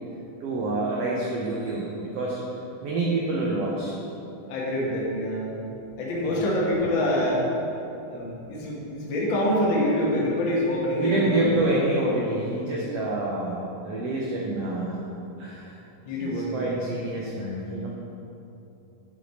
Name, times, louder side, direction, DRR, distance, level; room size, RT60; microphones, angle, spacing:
voice 1, 0.4-2.4 2.8-3.9 6.3-6.5 11.0-15.0 15.4-15.7 16.2-17.9, right 2 dB, 85° right, -4 dB, 1.3 m, -27 dB
voice 2, 4.5-5.5 6.0-7.4 8.1-11.5 16.0-16.9, left 1 dB, 60° left, -5 dB, 1.3 m, -26 dB
8.4 x 4.8 x 4.0 m, 2.8 s
omnidirectional pair, 3.8 m